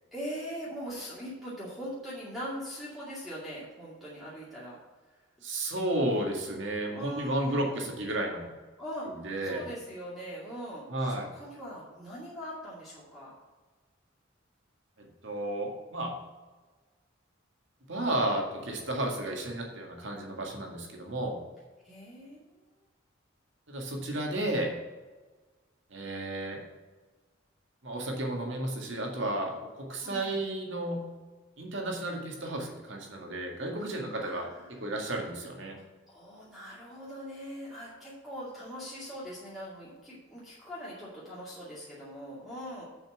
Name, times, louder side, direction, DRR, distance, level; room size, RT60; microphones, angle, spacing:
voice 1, 0.1-4.8 5.1-5.2 6.9-7.8 8.8-9.1 9.4-13.3 21.8-22.5 30.0-30.4 33.8-35.2 35.7-42.8, equal, ahead, -9 dB, 2.3 m, -41 dB
voice 2, 5.4-8.5 9.1-9.6 10.9-11.3 15.0-16.2 17.9-21.4 23.7-24.7 25.9-26.6 27.8-31.0 31.6-34.5 34.8-35.8, right 1 dB, 65° right, 1 dB, 2.0 m, -32 dB
7.3 x 5.7 x 7.3 m, 1.3 s
head